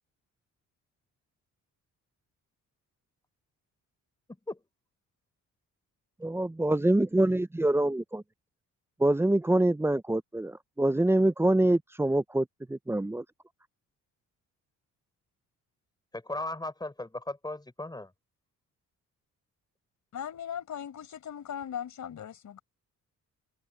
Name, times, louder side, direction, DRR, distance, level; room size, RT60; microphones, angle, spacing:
voice 1, 6.2-8.2 9.0-13.2, right 1 dB, 10° right, 0.5 m, -25 dB
voice 2, 16.1-18.1, left 2 dB, 15° left, 5.4 m, -37 dB
voice 3, 20.1-22.6, left 9 dB, 65° left, 5.6 m, -38 dB
cardioid pair, 110°, 32 cm